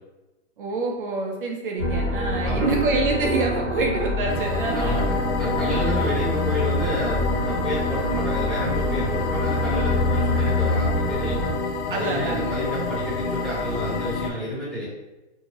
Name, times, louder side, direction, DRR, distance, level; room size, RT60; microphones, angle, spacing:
voice 1, 0.6-5.1 5.9-6.0 11.9-12.5, right 3 dB, 50° right, 0 dB, 0.5 m, -26 dB
sound 1, 1.8-11.5, left 2 dB, 50° left, 1.3 m, -25 dB
voice 2, 2.4-2.8 4.7-11.5 11.9-14.8, equal, ahead, -13 dB, 0.6 m, -30 dB
sound 2, 4.3-14.3, left 4 dB, 70° left, 0.5 m, -29 dB
2.7 x 2.6 x 2.9 m, 1.0 s
hypercardioid pair, 165°, 35 cm